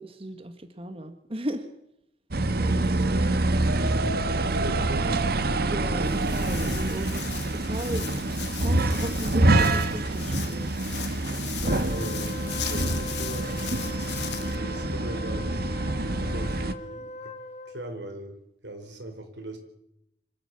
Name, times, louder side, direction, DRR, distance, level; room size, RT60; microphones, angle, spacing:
voice 1, 0.0-1.7 2.6-2.9 5.6-8.2 8.6-10.7, right 1 dB, 35° right, 7 dB, 1.6 m, -36 dB
sound 1, 2.3-16.7, right 2 dB, 60° right, 1.4 m, -26 dB
voice 2, 2.6-4.1 4.4-5.6 6.0-6.2 11.6-13.7 14.5-17.3 17.6-18.4 18.6-19.6, right 1 dB, 90° right, 5 dB, 4.7 m, -39 dB
Walk footsteps, 5.8-14.6, left 10 dB, 75° left, 1.9 m, -39 dB
Wind instrument woodwind instrument, 11.6-17.9, left 2 dB, 40° left, 1.4 m, -40 dB
26.0 x 12.5 x 8.5 m, 0.80 s
head